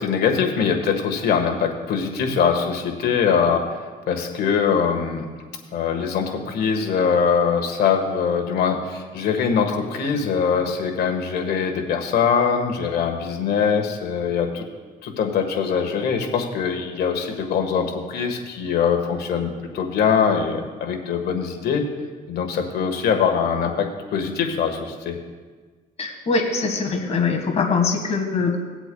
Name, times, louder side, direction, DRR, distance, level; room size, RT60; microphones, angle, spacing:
voice 1, 0.0-3.8 4.1-5.3 5.7-14.6 15.0-21.8 22.3-25.1, left 6 dB, 65° left, 3 dB, 1.5 m, -22 dB
voice 2, 26.0-28.6, left 4 dB, 40° left, 2 dB, 1.7 m, -22 dB
19.0 x 7.9 x 2.3 m, 1.4 s
cardioid pair, 110°, 17 cm